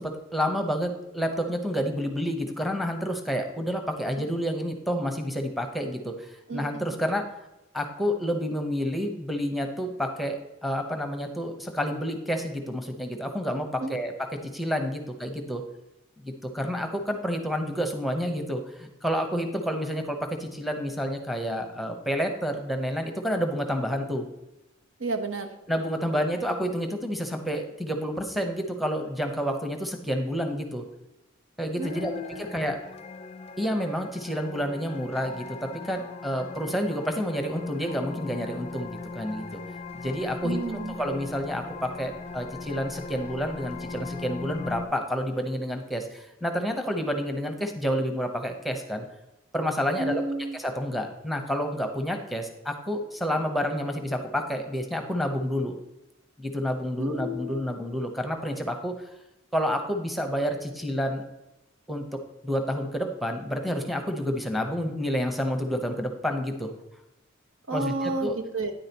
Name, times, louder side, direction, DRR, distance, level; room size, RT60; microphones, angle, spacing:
voice 1, 0.0-7.2 7.7-14.3 14.5-15.6 16.4-24.2 25.7-30.8 31.6-32.8 33.6-39.6 39.9-49.1 49.5-50.2 50.5-55.8 56.4-59.0 59.5-61.2 61.9-66.7 67.7-68.3, equal, ahead, 4 dB, 0.9 m, -29 dB
voice 2, 6.5-6.8 13.8-14.0 25.0-25.5 31.8-32.5 40.4-41.0 50.0-50.5 57.0-57.6 67.7-68.7, right 2 dB, 80° right, 5 dB, 1.1 m, -31 dB
sound 1, 31.8-44.9, left 4 dB, 30° left, 0.4 m, -39 dB
9.9 x 8.7 x 2.9 m, 0.96 s
head